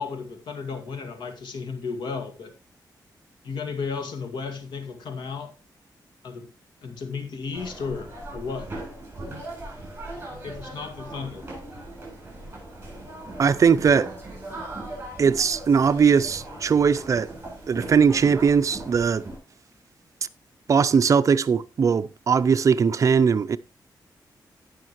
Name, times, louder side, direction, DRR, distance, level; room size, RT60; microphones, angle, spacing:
voice 1, 0.0-2.5 3.4-5.5 6.2-6.5 6.8-8.7 10.4-11.5, left 5 dB, 85° left, 2.0 m, -34 dB
sound 1, 7.5-19.4, right 1 dB, 25° right, 7.9 m, -39 dB
voice 2, 13.4-14.1 15.2-17.3 17.7-19.3 20.7-23.6, right 6 dB, 45° right, 0.5 m, -20 dB
18.0 x 6.4 x 3.1 m
wide cardioid pair, 150°, 8 cm